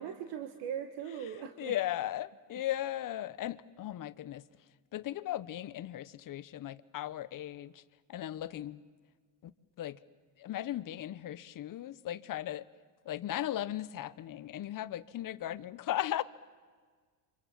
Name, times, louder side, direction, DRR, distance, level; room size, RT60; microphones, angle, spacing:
voice 1, 0.0-1.7, right 9 dB, 60° right, 7 dB, 1.6 m, -39 dB
voice 2, 1.2-4.5 4.9-7.8 8.1-8.8 9.4-9.5 9.8-10.0 10.4-12.7 13.0-16.2, left 13 dB, 40° left, 16 dB, 0.9 m, -37 dB
30.0 x 26.0 x 7.4 m, 1.5 s
supercardioid pair, 100°, 48 cm